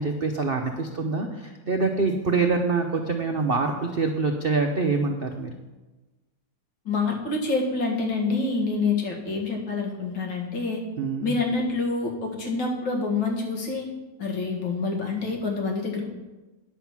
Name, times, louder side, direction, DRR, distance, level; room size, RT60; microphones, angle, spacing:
voice 1, 0.0-5.5 11.0-11.3, right 4 dB, 65° right, 3 dB, 0.5 m, -25 dB
voice 2, 6.9-10.8 11.2-13.9 14.2-16.1, left 3 dB, 80° left, 0 dB, 2.5 m, -27 dB
9.9 x 7.2 x 6.0 m, 1.2 s
omnidirectional pair, 2.0 m